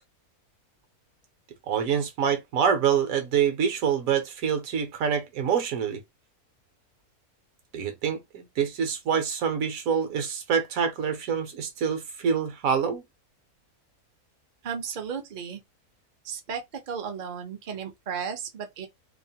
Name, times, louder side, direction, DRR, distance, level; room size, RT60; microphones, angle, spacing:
voice 1, 1.7-6.0 7.7-13.0, right 7 dB, 70° right, 1.1 m, -26 dB
voice 2, 14.6-15.6 16.3-16.6 16.9-18.9, right 7 dB, 50° right, 0.5 m, -34 dB
2.9 x 2.0 x 2.7 m
omnidirectional pair, 1.6 m